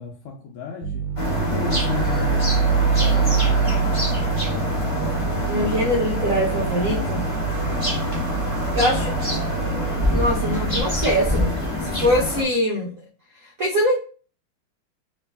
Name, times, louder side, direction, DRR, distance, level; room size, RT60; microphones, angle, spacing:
voice 1, 0.0-3.7, left 5 dB, 75° left, 1.4 m, -33 dB
sound 1, 0.8-10.8, right 7 dB, 85° right, 1.5 m, -25 dB
sound 2, 1.2-12.4, left 1 dB, 25° left, 0.8 m, -26 dB
voice 2, 5.5-7.2 8.7-9.2 10.1-12.9 13.4-14.0, equal, 70° right, 0.8 m, -23 dB
3.3 x 3.1 x 3.4 m
omnidirectional pair, 2.4 m